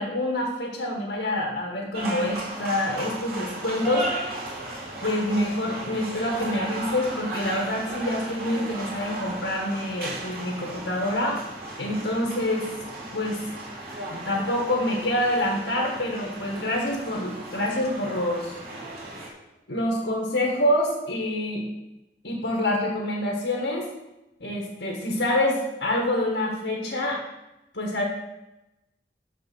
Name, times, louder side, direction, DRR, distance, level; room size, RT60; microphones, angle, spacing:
voice 1, 0.0-4.1 5.0-11.4 11.8-12.7 13.1-13.4 14.1-18.5 19.2-19.3 19.7-21.6 22.2-23.9 24.4-27.2 27.7-28.0, left 1 dB, 80° left, -1 dB, 1.6 m, -26 dB
sound 1, 1.9-19.3, right 1 dB, 55° right, 2.6 m, -36 dB
6.7 x 6.5 x 6.1 m, 0.96 s
head